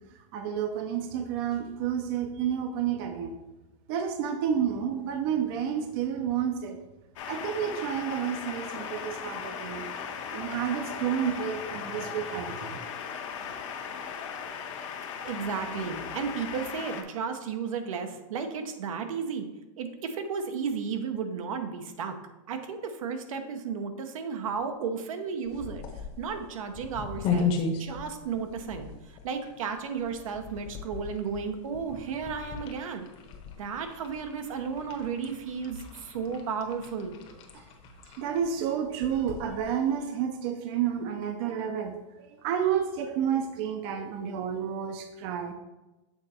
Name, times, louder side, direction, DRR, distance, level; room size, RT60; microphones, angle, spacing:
voice 1, 0.3-3.4 3.9-6.8 7.3-9.8 10.3-12.8 38.2-45.5, right 8 dB, 45° right, 6 dB, 0.6 m, -30 dB
sound 1, 7.2-17.0, left 7 dB, 65° left, 1.0 m, -37 dB
voice 2, 15.2-19.5 19.8-22.1 22.5-25.8 26.2-27.5 27.8-28.9 29.2-33.1 33.6-37.2, right 6 dB, 80° right, 7 dB, 0.9 m, -33 dB
sound 2, 25.4-40.0, left 4 dB, 35° left, 1.0 m, -37 dB
7.2 x 3.8 x 4.2 m, 1.0 s
supercardioid pair, 140°, 17 cm